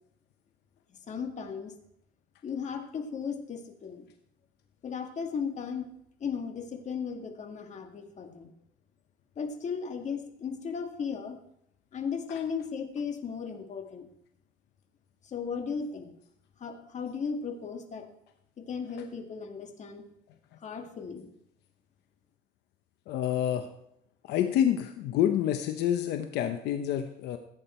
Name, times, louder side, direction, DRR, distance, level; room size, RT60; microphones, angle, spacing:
voice 1, 1.1-1.7 2.4-4.1 4.8-5.9 6.2-8.5 9.4-11.4 11.9-14.1 15.2-16.1 16.6-18.1 18.6-20.1 20.6-21.3, left 6 dB, 45° left, 5 dB, 1.9 m, -36 dB
voice 2, 23.1-23.7 24.3-27.4, left 10 dB, 85° left, 7 dB, 0.9 m, -28 dB
15.5 x 8.8 x 4.4 m, 0.74 s
cardioid pair, 110°, 17 cm